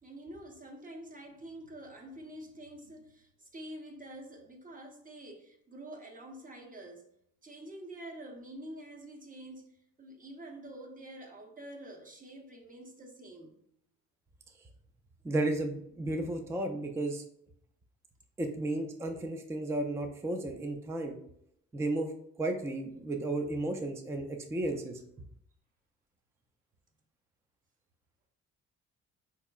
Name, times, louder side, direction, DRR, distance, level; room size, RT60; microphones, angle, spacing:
voice 1, 0.0-7.1 7.4-9.7 10.0-13.6, right 1 dB, 25° right, 2 dB, 0.8 m, -47 dB
voice 2, 15.2-17.2 18.4-21.1 21.7-22.1 22.4-25.0, right 2 dB, 10° right, 4 dB, 0.4 m, -33 dB
4.3 x 2.9 x 2.3 m, 0.71 s
cardioid pair, 90°, 30 cm